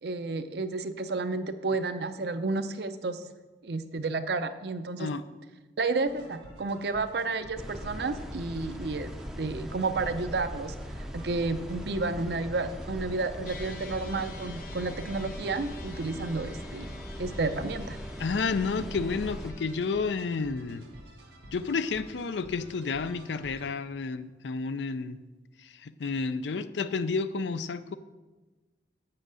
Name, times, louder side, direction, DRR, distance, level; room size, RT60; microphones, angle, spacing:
voice 1, 0.0-3.3 3.6-5.1 5.8-16.9 17.2-18.0, right 3 dB, 65° right, 11 dB, 0.6 m, -31 dB
sound 1, 6.1-23.7, right 1 dB, 80° right, 1.5 m, -51 dB
sound 2, 7.6-19.5, equal, ahead, 0.5 m, -40 dB
sound 3, 13.4-20.1, left 3 dB, 50° left, 0.8 m, -47 dB
voice 2, 18.2-20.8 21.5-25.2 25.8-28.0, left 4 dB, 85° left, 13 dB, 0.5 m, -31 dB
7.6 x 6.5 x 6.2 m, 1.2 s
head